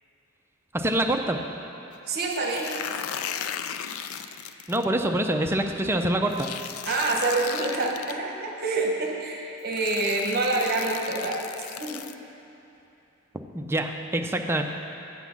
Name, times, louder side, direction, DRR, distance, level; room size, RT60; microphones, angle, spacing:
voice 1, 0.7-1.4 4.7-6.5 13.5-14.6, right 1 dB, 10° right, 3 dB, 0.5 m, -25 dB
voice 2, 2.1-2.8 6.9-12.0, right 2 dB, 50° right, 0 dB, 1.0 m, -27 dB
sound 1, 2.3-4.9 6.3-8.1 9.1-9.2 9.7-12.1, left 9 dB, 75° left, 0.4 m, -36 dB
8.1 x 7.1 x 5.8 m, 2.8 s
head